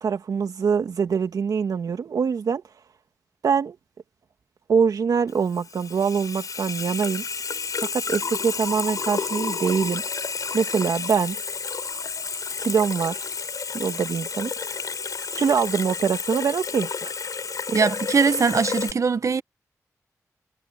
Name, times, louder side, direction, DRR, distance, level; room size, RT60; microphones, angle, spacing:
voice 1, 0.0-2.6 3.4-3.8 4.7-7.2 7.8-10.0 10.5-11.4 12.6-13.3 13.7-14.5 15.3-17.1, right 6 dB, 85° right, 2.5 m, -24 dB
Water tap faucet / Sink (filling or washing), 5.3-18.9, left 5 dB, 70° left, 5.1 m, -31 dB
voice 2, 17.7-19.4, right 5 dB, 55° right, 0.9 m, -21 dB
cardioid pair, 55°, 6 cm